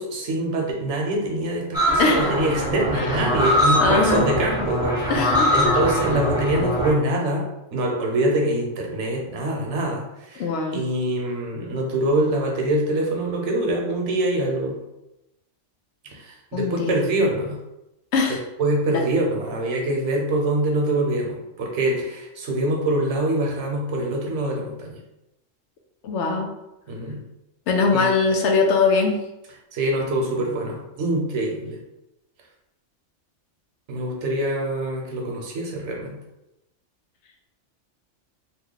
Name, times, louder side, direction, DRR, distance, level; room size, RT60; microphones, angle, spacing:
voice 1, 0.0-5.1 5.5-10.0 10.3-10.4 10.7-14.8 16.1-17.6 18.6-25.0 26.9-27.2 27.9-28.1 29.7-31.8 33.9-36.1, right 1 dB, 75° right, 0 dB, 1.0 m, -24 dB
sound 1, 1.7-6.9, equal, 5° right, 0.7 m, -22 dB
voice 2, 2.0-2.3 2.9-3.2 3.8-4.3 5.1-5.8 10.4-10.8 16.5-17.0 18.1-18.4 18.9-19.0 26.0-26.5 27.7-29.2, left 4 dB, 75° left, 2 dB, 0.8 m, -21 dB
2.9 x 2.2 x 3.7 m, 0.91 s
omnidirectional pair, 1.2 m